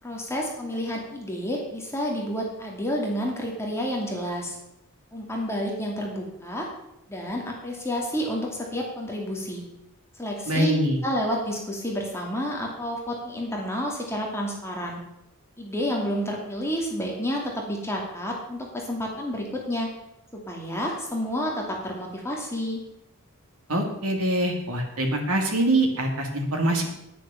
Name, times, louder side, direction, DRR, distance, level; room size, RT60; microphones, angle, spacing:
voice 1, 0.0-4.6 5.1-6.7 7.1-9.6 10.2-10.7 11.0-15.0 15.6-19.9 20.3-22.8, equal, 10° left, -1 dB, 2.5 m, -30 dB
voice 2, 10.5-11.0 23.7-26.9, right 1 dB, 85° right, 2 dB, 2.7 m, -24 dB
10.0 x 10.0 x 7.1 m, 0.86 s
head